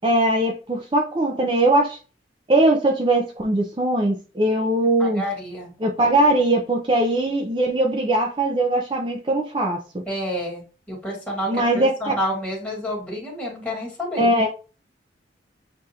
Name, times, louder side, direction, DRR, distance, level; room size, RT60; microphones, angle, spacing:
voice 1, 0.0-2.0 2.5-5.2 5.8-9.8 11.5-12.2 14.2-14.5, right 1 dB, 25° right, 1 dB, 0.5 m, -20 dB
voice 2, 5.0-5.7 10.1-14.3, equal, 10° left, -4 dB, 1.9 m, -29 dB
7.4 x 2.5 x 2.8 m, 0.36 s
head